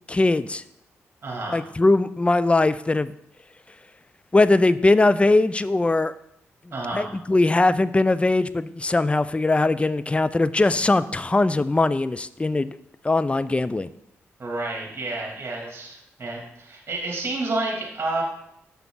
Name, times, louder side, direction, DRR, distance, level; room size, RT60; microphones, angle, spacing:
voice 1, 0.1-0.6 1.5-3.1 4.3-6.1 6.9-12.7 13.0-13.9, left 2 dB, 20° left, 16 dB, 0.4 m, -20 dB
voice 2, 1.2-1.6 6.7-7.1 14.4-18.2, right 2 dB, 40° right, -1 dB, 2.1 m, -30 dB
7.0 x 5.8 x 3.7 m, 0.77 s
supercardioid pair, 45°, 6 cm